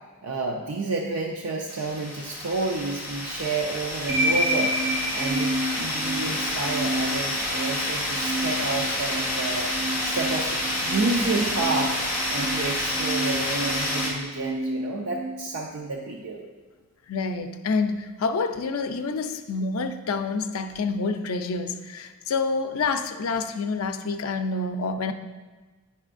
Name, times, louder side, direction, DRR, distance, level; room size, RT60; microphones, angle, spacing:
voice 1, 0.2-16.5, right 3 dB, 75° right, 0 dB, 0.5 m, -30 dB
sound 1, 1.7-14.1, left 1 dB, 5° right, 1.4 m, -29 dB
sound 2, 4.1-16.1, right 1 dB, 40° right, 2.2 m, -30 dB
voice 2, 17.1-25.1, left 4 dB, 70° left, 7 dB, 0.4 m, -28 dB
8.9 x 5.5 x 2.5 m, 1.3 s
head